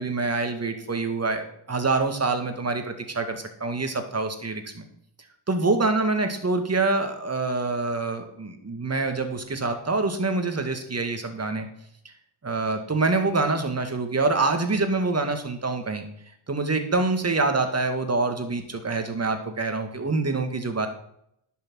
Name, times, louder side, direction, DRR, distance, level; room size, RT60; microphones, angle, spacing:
voice 1, 0.0-4.8 5.5-11.7 12.4-16.1 16.5-20.9, right 3 dB, 30° right, 6 dB, 2.2 m, -26 dB
10.5 x 6.7 x 6.4 m, 0.73 s
cardioid pair, 65°, 48 cm